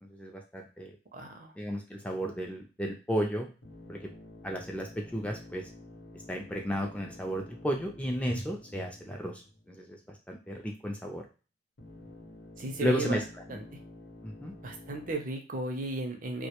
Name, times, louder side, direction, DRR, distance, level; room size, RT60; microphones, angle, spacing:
voice 1, 0.0-1.0 1.6-3.5 3.9-4.1 4.4-5.7 6.3-10.0 10.3-11.3 12.8-13.6 14.2-14.6, equal, 5° left, 1 dB, 0.4 m, -33 dB
voice 2, 1.1-1.5 12.6-13.2 13.5-13.6 14.6-16.5, right 2 dB, 50° right, 4 dB, 0.5 m, -35 dB
sound 1, 3.6-9.9 11.8-15.1, left 1 dB, 85° left, 0.8 m, -50 dB
2.2 x 2.1 x 2.9 m, 0.33 s
head